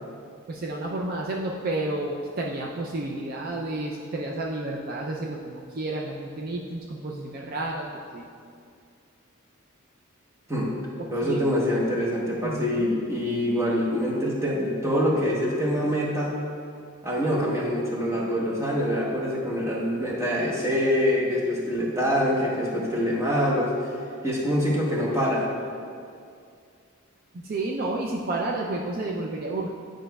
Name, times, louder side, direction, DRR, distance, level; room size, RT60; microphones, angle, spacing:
voice 1, 0.5-8.3 11.0-11.5 12.4-12.9 27.3-29.7, right 2 dB, 45° right, -1 dB, 0.4 m, -31 dB
voice 2, 11.1-16.4 17.0-23.7 24.2-25.5, equal, 15° right, -4 dB, 0.9 m, -25 dB
9.6 x 5.0 x 2.2 m, 2.3 s
head